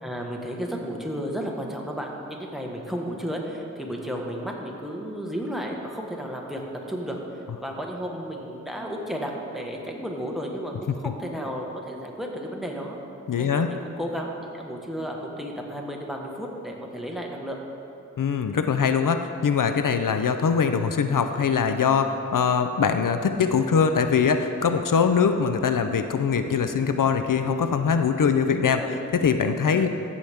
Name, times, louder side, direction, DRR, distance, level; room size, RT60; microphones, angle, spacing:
voice 1, 0.0-6.6 6.9-7.2 7.6-13.0 13.4-17.6 28.6-29.0 29.8-29.9, equal, ahead, 0 dB, 1.4 m, -33 dB
voice 2, 13.3-13.7 18.2-28.8 29.1-29.9, left 6 dB, 85° left, 8 dB, 0.5 m, -22 dB
14.5 x 7.1 x 3.5 m, 2.7 s
wide cardioid pair, 45°, 31 cm